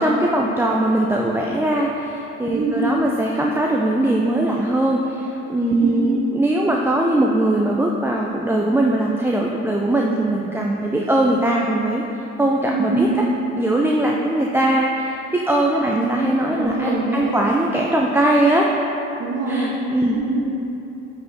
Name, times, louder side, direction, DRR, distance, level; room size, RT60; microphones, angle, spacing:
voice 1, 0.0-12.0 12.4-13.1 13.6-18.7 19.5-20.2, right 1 dB, 5° right, -2 dB, 0.5 m, -20 dB
voice 2, 2.5-2.9 5.7-6.1 12.7-13.1 15.8-16.2 16.6-17.5 19.2-19.7 20.0-20.5, right 3 dB, 50° right, -3 dB, 1.3 m, -24 dB
9.3 x 4.1 x 2.8 m, 2.9 s
hypercardioid pair, 45°, 33 cm